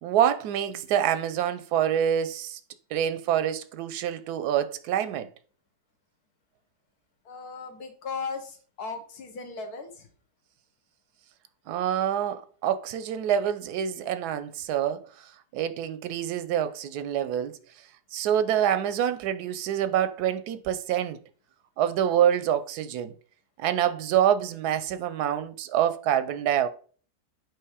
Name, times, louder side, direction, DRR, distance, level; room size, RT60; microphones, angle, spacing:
voice 1, 0.0-2.6 2.9-5.3 11.7-17.6 18.1-21.2 21.8-23.1 23.6-26.7, right 10 dB, 90° right, 1.1 m, -26 dB
voice 2, 7.2-10.1, left 4 dB, 80° left, 1.6 m, -37 dB
7.8 x 3.1 x 4.9 m
omnidirectional pair, 1.6 m